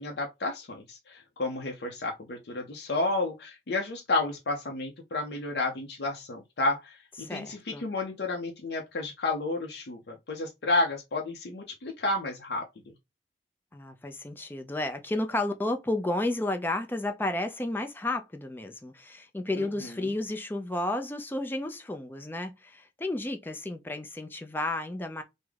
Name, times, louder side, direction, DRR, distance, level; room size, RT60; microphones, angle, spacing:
voice 1, 0.0-12.6 19.6-20.1, left 2 dB, 65° left, 0.5 m, -31 dB
voice 2, 7.2-7.8 13.7-25.2, left 2 dB, 10° left, 0.4 m, -32 dB
3.5 x 2.1 x 3.2 m
head